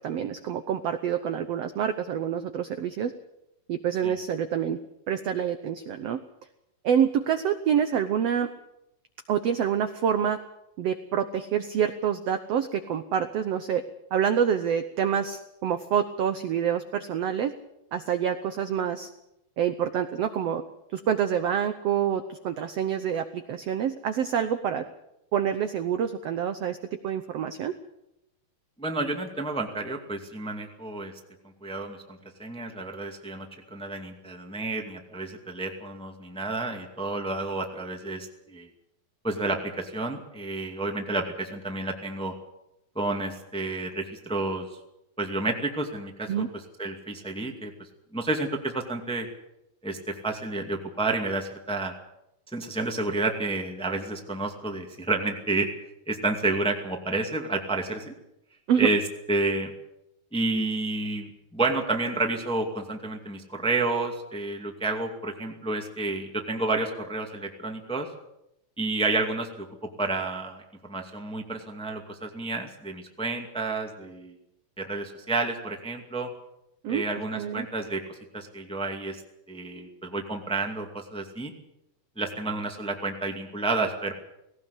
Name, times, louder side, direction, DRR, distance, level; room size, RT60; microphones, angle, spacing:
voice 1, 0.0-3.1 3.7-4.8 5.1-6.2 6.8-8.5 9.3-10.4 10.8-13.8 14.1-17.5 17.9-19.1 19.6-20.6 20.9-24.8 25.3-26.8 27.0-27.7 46.3-46.5 58.7-58.9 76.8-77.0 77.3-77.6, right 8 dB, 75° right, 9 dB, 1.4 m, -27 dB
voice 2, 28.8-31.1 31.6-38.7 39.2-42.3 42.9-44.7 45.2-46.4 46.8-47.7 48.1-49.3 49.8-51.9 52.5-55.7 56.1-58.1 58.8-59.0 59.3-59.7 60.3-68.1 68.8-69.7 70.0-74.3 74.8-76.3 76.9-78.0 78.3-79.2 79.5-81.5 82.2-84.1, right 2 dB, ahead, 3 dB, 1.3 m, -30 dB
18.5 x 18.0 x 8.3 m, 0.85 s
omnidirectional pair, 4.1 m